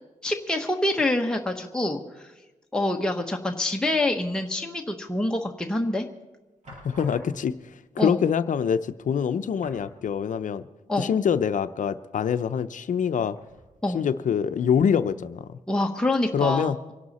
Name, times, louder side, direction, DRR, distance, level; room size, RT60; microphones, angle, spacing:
voice 1, 0.2-2.3 2.7-6.1 8.0-8.2 10.9-11.1 13.8-14.0 15.7-16.9, left 1 dB, 5° left, 2 dB, 1.1 m, -26 dB
sound 1, 5.4-5.9 6.6-7.7 8.7-8.8 9.1-9.2 9.6-10.6 10.9-11.0 13.3-14.0 14.6-14.7, right 1 dB, 55° right, 7.2 m, -49 dB
voice 2, 6.8-7.5 8.0-10.6 11.0-13.4 13.9-15.4 16.3-16.8, left 7 dB, 65° left, 11 dB, 0.6 m, -25 dB
25.5 x 11.0 x 4.2 m, 1.1 s
cardioid pair, 90°, 14 cm